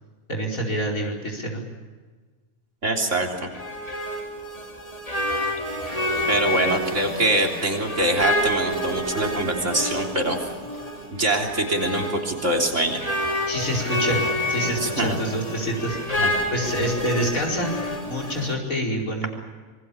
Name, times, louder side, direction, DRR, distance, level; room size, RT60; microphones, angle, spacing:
voice 1, 0.3-1.6 13.5-14.2 14.5-16.0 16.5-17.7 18.1-19.3, equal, 70° left, 0 dB, 5.3 m, -26 dB
voice 2, 2.8-3.3 6.3-10.4 11.1-13.0 14.8-15.2 16.2-16.3, right 1 dB, 55° right, 1 dB, 3.9 m, -24 dB
sound 1, 3.2-18.5, left 1 dB, 25° left, 3.5 m, -28 dB
26.5 x 23.0 x 7.1 m, 1.4 s
omnidirectional pair, 1.5 m